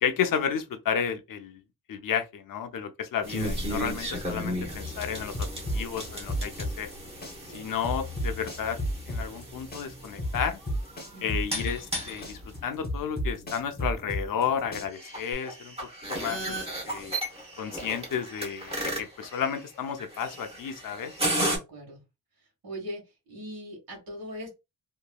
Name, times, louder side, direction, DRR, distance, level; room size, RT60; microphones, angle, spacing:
voice 1, 0.0-1.6 1.9-5.5 5.7-6.9 7.5-8.8 9.1-10.6 11.2-15.7 16.1-17.1 17.6-21.1, left 7 dB, 60° left, 0.6 m, -32 dB
sound 1, 3.2-21.6, equal, 15° right, 0.9 m, -35 dB
sound 2, 5.3-7.0 7.2-9.5 9.7-12.0 12.2-14.5 14.7-15.3, equal, 25° left, 0.7 m, -31 dB
voice 2, 7.4-7.7 11.1-11.4 21.4-22.0 22.6-23.0 23.3-24.5, equal, 70° right, 1.5 m, -40 dB
2.9 x 2.5 x 2.2 m
wide cardioid pair, 135°, 37 cm